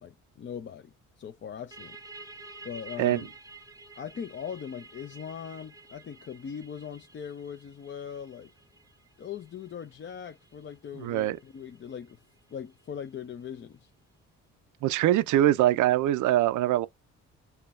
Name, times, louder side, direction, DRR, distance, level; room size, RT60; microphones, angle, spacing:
voice 1, 0.0-2.0 2.6-3.3 4.0-8.5 9.2-12.2 12.5-13.9, left 8 dB, 40° left, 0.5 m, -40 dB
sound 1, 1.7-13.1, right 3 dB, 10° right, 0.8 m, -51 dB
voice 2, 11.0-11.4 14.8-16.9, right 13 dB, 75° right, 0.5 m, -23 dB
5.6 x 2.3 x 2.4 m
cardioid pair, 90°, 30 cm